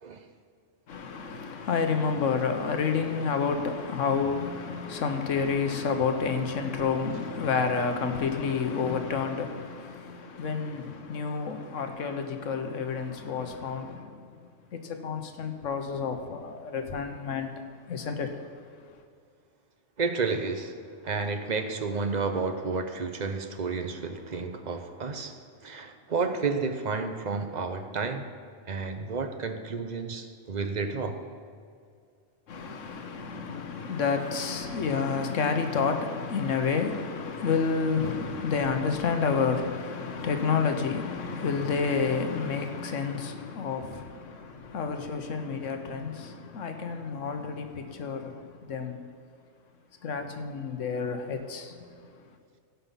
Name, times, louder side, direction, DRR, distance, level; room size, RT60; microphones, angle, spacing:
voice 1, 0.9-14.4 14.7-17.5 17.9-18.4 32.5-49.0 50.0-51.8, left 5 dB, 90° left, 1.3 m, -29 dB
voice 2, 20.0-20.8 21.0-28.3 28.7-31.2, right 4 dB, 40° right, 0.8 m, -31 dB
16.5 x 5.6 x 5.6 m
omnidirectional pair, 1.3 m